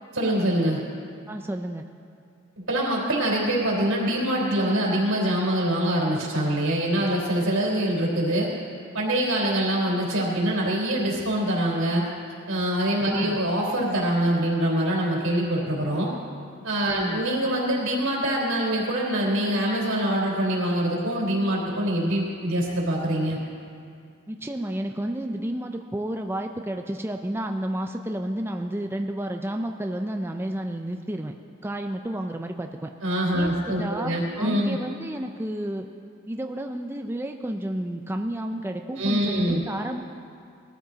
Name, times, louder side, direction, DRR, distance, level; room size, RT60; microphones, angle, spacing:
voice 1, 0.1-0.8 2.7-8.5 8.9-12.1 12.5-16.1 16.6-23.4 33.0-34.8 39.0-39.6, right 1 dB, 85° right, -3 dB, 3.8 m, -24 dB
voice 2, 1.3-1.8 13.1-13.4 16.9-17.2 24.3-31.3 31.6-32.9 33.3-35.9 36.3-40.0, right 1 dB, 10° right, 4 dB, 0.5 m, -31 dB
21.0 x 13.5 x 4.1 m, 2.4 s
head